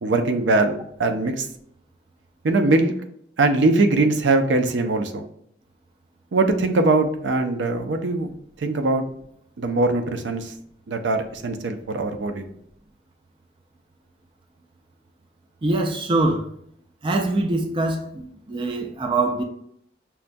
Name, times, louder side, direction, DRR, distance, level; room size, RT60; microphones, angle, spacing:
voice 1, 0.0-1.5 2.4-2.9 3.4-5.3 6.3-8.3 8.6-9.0 9.6-10.5 10.9-12.5, right 2 dB, 85° right, 0.5 m, -21 dB
voice 2, 15.6-16.5 17.0-19.4, right 2 dB, 30° right, 0.3 m, -23 dB
5.7 x 2.2 x 2.6 m
head